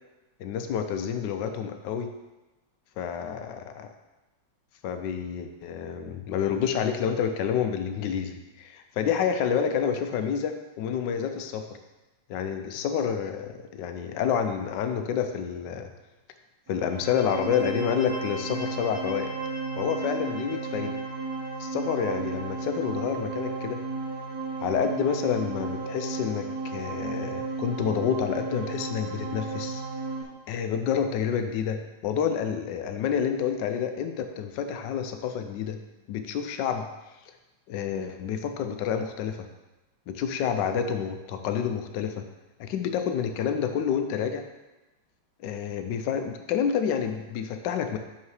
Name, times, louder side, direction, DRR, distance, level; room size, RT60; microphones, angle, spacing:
voice 1, 0.4-2.1 3.0-3.9 4.8-11.6 12.3-15.9 16.7-19.3 19.8-21.0 21.6-23.8 24.6-29.8 30.5-35.8 36.1-36.9 37.7-39.5 40.1-42.2 42.6-44.4 45.4-48.0, left 7 dB, 80° left, 7 dB, 1.3 m, -29 dB
sound 1, 16.7-30.2, right 3 dB, 65° right, 2.2 m, -33 dB
6.8 x 5.7 x 4.8 m, 1.1 s
omnidirectional pair, 1.9 m